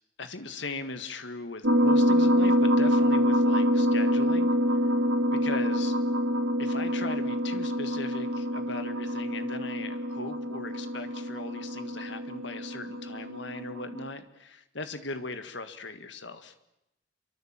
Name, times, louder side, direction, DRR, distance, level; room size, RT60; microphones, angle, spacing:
voice 1, 0.2-4.8 5.3-6.0 6.6-16.5, left 3 dB, 60° left, 9 dB, 1.9 m, -39 dB
sound 1, 1.6-14.1, equal, 55° right, 2.1 m, -26 dB
27.5 x 23.5 x 7.6 m, 0.89 s
head